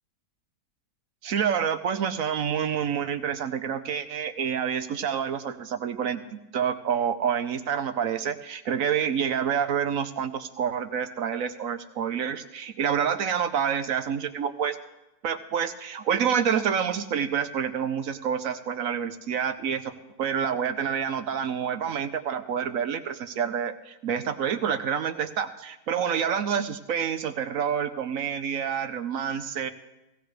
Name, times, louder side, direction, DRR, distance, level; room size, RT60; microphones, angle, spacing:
voice 1, 1.2-14.8 15.2-19.9 20.2-29.7, right 8 dB, 60° right, 9 dB, 1.0 m, -28 dB
17.5 x 16.5 x 3.3 m, 0.96 s
omnidirectional pair, 1.8 m